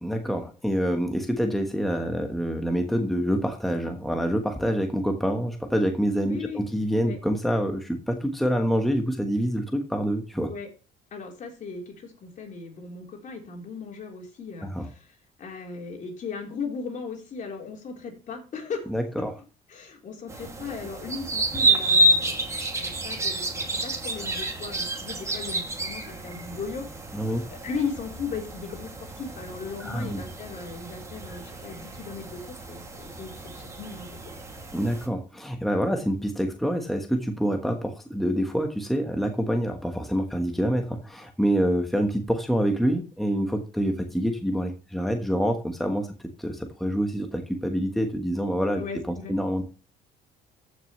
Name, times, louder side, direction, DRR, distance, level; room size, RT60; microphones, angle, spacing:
voice 1, 0.0-10.5 14.6-14.9 18.9-19.3 27.1-27.5 29.8-30.2 34.7-46.1 46.4-48.8 49.3-49.6, equal, ahead, 4 dB, 1.3 m, -26 dB
voice 2, 6.2-7.2 10.5-10.7 11.1-18.9 19.7-22.5 22.7-26.9 27.1-34.2 48.8-49.4, left 5 dB, 50° left, 1 dB, 4.1 m, -37 dB
sound 1, 20.3-35.1, right 1 dB, 15° right, 2.5 m, -29 dB
14.5 x 6.3 x 3.2 m, 0.34 s
cardioid pair, 110°, 17 cm